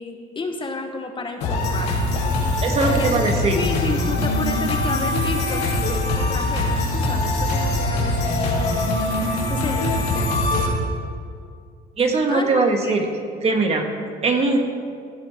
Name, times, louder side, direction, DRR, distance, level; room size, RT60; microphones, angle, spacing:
voice 1, 0.0-1.9 2.4-3.3 3.5-8.8 9.5-10.8 12.3-13.0, left 3 dB, 30° left, 4 dB, 1.2 m, -31 dB
sound 1, 1.4-10.7, left 1 dB, 85° left, 3.1 m, -22 dB
voice 2, 2.6-3.6 12.0-13.1 13.4-13.9 14.2-14.6, right 3 dB, 40° right, 3 dB, 1.7 m, -20 dB
15.5 x 12.0 x 3.6 m, 2.2 s
cardioid pair, 110°, 17 cm